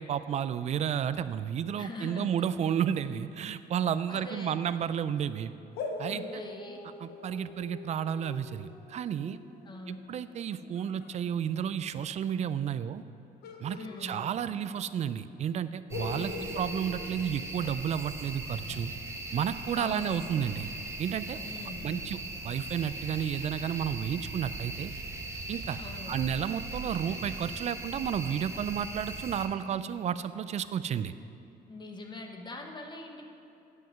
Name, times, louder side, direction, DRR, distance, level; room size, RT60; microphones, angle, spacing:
voice 1, 0.0-5.5 6.0-6.4 7.0-9.4 9.9-13.0 13.6-18.9 19.3-20.7 21.0-21.4 21.8-22.2 22.4-24.9 25.5-25.8 26.1-31.1, right 8 dB, 40° right, 14 dB, 0.4 m, -32 dB
voice 2, 1.8-2.3 4.1-4.6 6.1-6.8 9.6-10.0 13.8-14.2 16.1-16.5 19.7-20.2 21.4-22.2 25.7-26.1 31.7-33.2, left 2 dB, 25° left, 3 dB, 0.9 m, -43 dB
sound 1, 5.7-11.2 13.4-14.9 15.1-15.2 15.9-18.1, left 3 dB, 70° left, 0.9 m, -43 dB
sound 2, 15.9-29.5, right 2 dB, 15° right, 1.0 m, -39 dB
sound 3, 16.2-16.7 17.5-17.8 18.6-18.9 19.7-20.4 21.1-21.8 22.4-23.1 23.4-23.8, left 8 dB, 50° left, 0.5 m, -53 dB
9.4 x 6.1 x 5.8 m, 2.8 s
cardioid pair, 110°, 17 cm